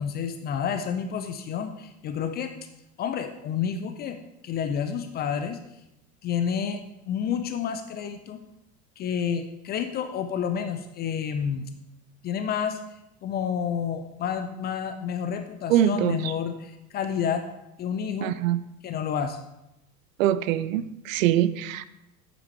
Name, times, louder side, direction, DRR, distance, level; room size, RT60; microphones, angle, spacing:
voice 1, 0.0-2.5 3.0-4.2 4.4-5.6 6.2-6.8 7.1-8.4 9.0-11.7 12.2-12.8 13.2-17.4 17.8-18.4 18.8-19.4, left 7 dB, 20° left, 8 dB, 0.4 m, -29 dB
voice 2, 15.7-16.2 18.2-18.6 20.2-21.8, right 12 dB, 55° right, 15 dB, 0.5 m, -23 dB
8.7 x 8.0 x 3.1 m, 0.89 s
figure-of-eight pair, 75°, 48 cm